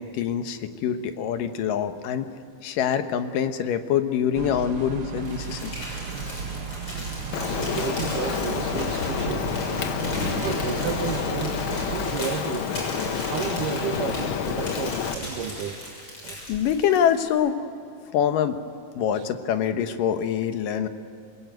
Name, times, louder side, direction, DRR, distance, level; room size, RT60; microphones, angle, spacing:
voice 1, 0.0-2.3 2.6-5.7 16.5-17.6 18.1-18.6 19.0-20.9, left 9 dB, 85° left, 8 dB, 2.8 m, -25 dB
sound 1, 4.3-12.2, right 6 dB, 55° right, 1.8 m, -35 dB
Crumpling crinkling, 5.2-17.3, left 1 dB, 35° left, 7.2 m, -36 dB
Rain, 7.3-15.2, left 7 dB, 70° left, 1.2 m, -29 dB
voice 2, 7.4-9.5 10.2-11.6 11.9-12.7 13.0-15.8 16.2-16.4 19.1-19.2, right 7 dB, 80° right, 8 dB, 2.9 m, -32 dB
25.0 x 22.0 x 9.2 m, 2.4 s
omnidirectional pair, 3.7 m